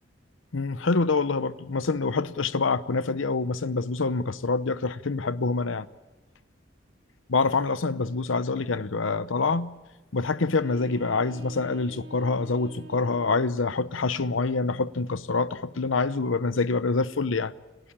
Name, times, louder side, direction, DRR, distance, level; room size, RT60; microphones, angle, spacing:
voice 1, 0.5-5.9 7.3-9.7 10.1-17.5, left 3 dB, 80° left, 0.8 m, -26 dB
sound 1, 10.5-13.5, right 3 dB, 80° right, 3.8 m, -46 dB
30.0 x 12.0 x 8.8 m
head